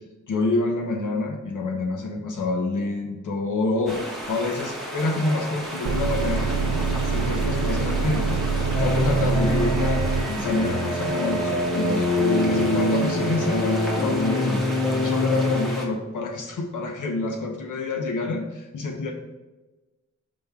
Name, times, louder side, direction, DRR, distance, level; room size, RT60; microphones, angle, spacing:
voice 1, 0.3-14.6 15.0-19.1, left 2 dB, 90° left, 2 dB, 0.9 m, -27 dB
sound 1, 3.9-15.9, equal, ahead, 1.2 m, -34 dB
sound 2, 5.9-10.3, right 4 dB, 70° right, 0.6 m, -25 dB
sound 3, 8.7-15.6, left 1 dB, 55° left, 1.7 m, -24 dB
5.2 x 3.6 x 5.5 m, 1.1 s
wide cardioid pair, 150°, 30 cm